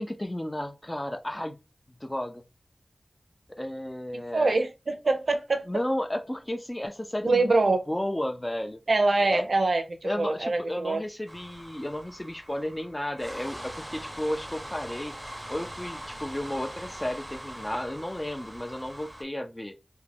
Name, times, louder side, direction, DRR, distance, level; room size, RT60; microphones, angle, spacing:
voice 1, 0.0-1.6 1.9-2.5 3.6-4.6 5.7-8.8 9.2-9.5 10.0-15.2 15.5-19.8, left 1 dB, 20° left, 0.3 m, -33 dB
voice 2, 4.1-5.6 7.2-7.8 8.9-9.8 10.2-11.0, right 3 dB, 75° right, 0.5 m, -24 dB
sound 1, 11.3-19.2, right 1 dB, 20° right, 0.6 m, -42 dB
2.4 x 2.1 x 3.2 m
wide cardioid pair, 60°, 0 cm